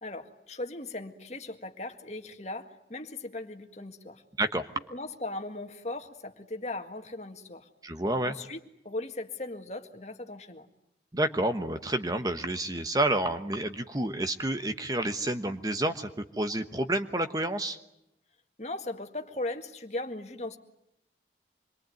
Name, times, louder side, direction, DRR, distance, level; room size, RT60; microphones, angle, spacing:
voice 1, 0.0-4.2 4.9-7.7 8.2-10.7 18.6-20.6, left 2 dB, 40° left, 6 dB, 1.9 m, -38 dB
voice 2, 7.8-8.3 11.1-17.8, right 1 dB, 20° right, 8 dB, 1.1 m, -29 dB
26.5 x 22.5 x 9.2 m, 0.81 s
head